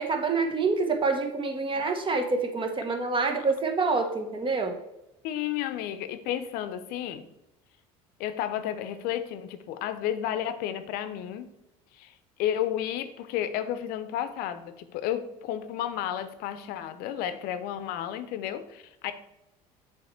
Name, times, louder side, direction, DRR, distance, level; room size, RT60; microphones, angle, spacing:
voice 1, 0.0-4.8, right 4 dB, 30° right, 5 dB, 1.1 m, -27 dB
voice 2, 5.2-7.3 8.2-11.5 11.9-12.1 12.4-19.1, left 11 dB, 65° left, 12 dB, 0.6 m, -32 dB
7.0 x 3.2 x 4.4 m, 0.89 s
supercardioid pair, 85°, 17 cm